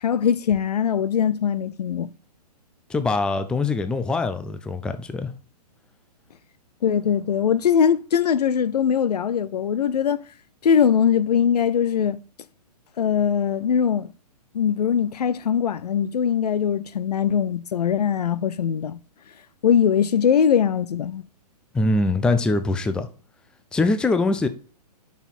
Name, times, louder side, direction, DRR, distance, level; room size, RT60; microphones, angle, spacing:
voice 1, 0.0-2.1 6.8-10.2 10.6-12.2 13.0-14.1 14.5-19.0 19.6-21.2, left 8 dB, 70° left, 0.6 m, -21 dB
voice 2, 2.9-5.3 21.7-23.1 23.7-24.5, left 3 dB, 5° left, 0.4 m, -23 dB
7.0 x 5.8 x 4.1 m
hypercardioid pair, 125°, 21 cm